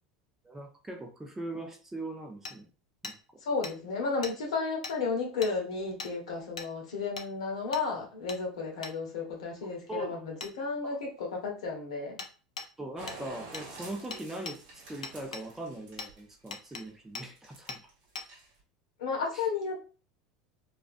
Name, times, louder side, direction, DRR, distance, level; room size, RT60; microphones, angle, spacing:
voice 1, 0.4-2.7 3.0-3.4 9.6-10.2 10.8-11.0 12.8-17.8 19.3-19.4, right 1 dB, 10° right, 3 dB, 0.6 m, -41 dB
Hammer, 2.5-2.6 3.0-3.2 3.6-3.7 4.2-4.4 4.8-5.0 5.4-5.5 6.0-6.1 6.6-6.7 7.2-7.3 7.7-7.9 8.3-8.4 8.8-9.0 10.4-10.5 12.2-12.3 12.6-12.7 13.1-13.2 13.5-13.7 14.1-14.6 15.0-15.5 16.0-16.1 16.5-16.8 17.2-17.3 17.7-17.8 18.2-18.3, left 4 dB, 90° left, 0.3 m, -40 dB
voice 2, 3.4-12.2 19.0-19.9, left 4 dB, 70° left, 0 dB, 0.9 m, -33 dB
sound 1, 13.0-16.9 17.4-17.9 18.2-18.6, right 2 dB, 55° right, 0.9 m, -48 dB
2.3 x 2.2 x 2.5 m, 0.34 s
hypercardioid pair, 80°, 3 cm